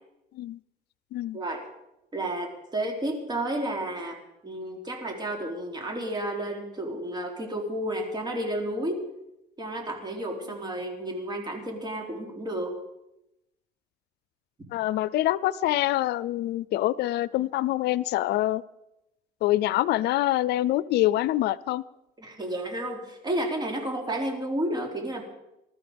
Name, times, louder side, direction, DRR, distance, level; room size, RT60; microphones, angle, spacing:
voice 1, 1.3-1.6 2.1-9.0 9.6-12.8 22.2-25.2, right 1 dB, 25° right, 2 dB, 3.9 m, -31 dB
voice 2, 14.7-18.6 19.4-21.8, left 15 dB, 75° left, 19 dB, 0.5 m, -25 dB
20.5 x 13.0 x 5.2 m, 0.90 s
cardioid pair, 110°, 17 cm